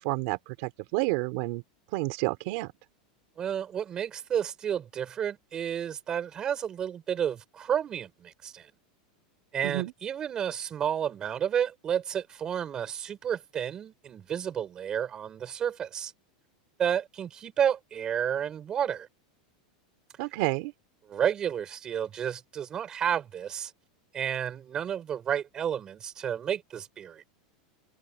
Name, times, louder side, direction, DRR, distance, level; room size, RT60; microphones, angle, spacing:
voice 1, 0.0-1.6 1.9-2.7 9.6-9.9 20.2-20.7, right 22 dB, 45° right, 3.6 m, -30 dB
voice 2, 3.4-8.7 9.5-16.1 16.8-19.1 21.1-23.7 24.1-27.2, right 9 dB, 20° right, 6.5 m, -31 dB
supercardioid pair, 180°, 4 cm